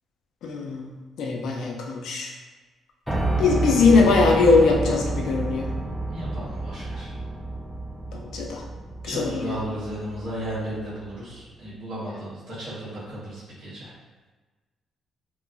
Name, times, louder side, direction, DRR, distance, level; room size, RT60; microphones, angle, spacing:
voice 1, 0.4-0.9 1.2-2.3 3.4-5.7 8.1-8.6 9.0-9.6, left 4 dB, 75° left, 0 dB, 0.4 m, -21 dB
Piano, 3.1-11.1, right 2 dB, ahead, 0.4 m, -29 dB
voice 2, 6.1-7.1 9.0-13.9, right 1 dB, 70° right, -11 dB, 1.3 m, -34 dB
2.8 x 2.3 x 2.5 m, 1.3 s
cardioid pair, 90°, 0 cm